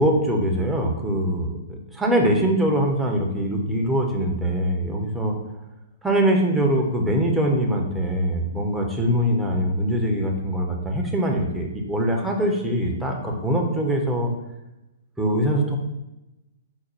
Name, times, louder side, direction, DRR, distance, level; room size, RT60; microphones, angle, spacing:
voice 1, 0.0-1.5 1.9-5.3 6.0-14.3 15.2-15.8, equal, 5° right, 0 dB, 0.7 m, -22 dB
5.1 x 2.2 x 4.3 m, 0.96 s
figure-of-eight pair, 115°, 0 cm